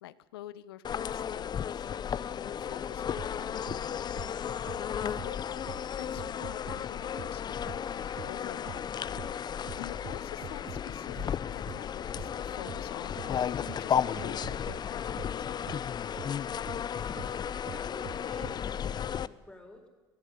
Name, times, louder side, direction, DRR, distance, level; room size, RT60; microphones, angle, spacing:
voice 1, 0.0-1.9 2.4-4.2 5.0-5.6 6.0-8.8 9.8-15.6 17.2-17.4, left 14 dB, 90° left, 18 dB, 0.8 m, -47 dB
sound 1, 0.8-19.3, left 8 dB, 35° left, 0.6 m, -34 dB
sound 2, 3.2-3.3 3.7-3.8 4.2-4.3 4.7-4.8 5.2-5.3 5.7-5.8 6.2-6.8 7.2-7.3 7.7-7.8 8.2-8.3 8.7-8.8 9.2-9.3 9.7-10.8 11.2-11.3 11.7-11.8 12.2-12.3 12.7-12.8 13.2-13.3 13.7-13.8 14.2-14.8 15.2-15.3 15.7-15.8 16.2-16.3 16.7-16.8 17.2-17.3 17.7-18.6, right 12 dB, 50° right, 0.9 m, -44 dB
voice 2, 16.9-19.9, left 1 dB, 10° left, 4 dB, 4.2 m, -51 dB
22.5 x 15.0 x 8.4 m, 1.3 s
supercardioid pair, 85°, 12 cm